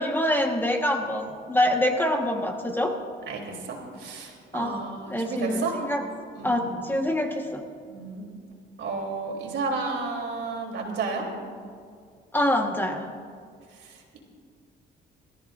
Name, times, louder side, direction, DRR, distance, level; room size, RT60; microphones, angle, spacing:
voice 1, 0.0-2.9 4.5-4.8 5.1-6.0 6.4-7.6 12.3-13.1, left 1 dB, 10° left, 3 dB, 1.3 m, -25 dB
voice 2, 3.3-5.8 6.3-6.8 7.9-8.3 8.8-11.2 13.7-14.2, right 4 dB, 70° right, 0 dB, 3.3 m, -32 dB
24.0 x 14.0 x 2.6 m, 2.1 s
cardioid pair, 90°, 20 cm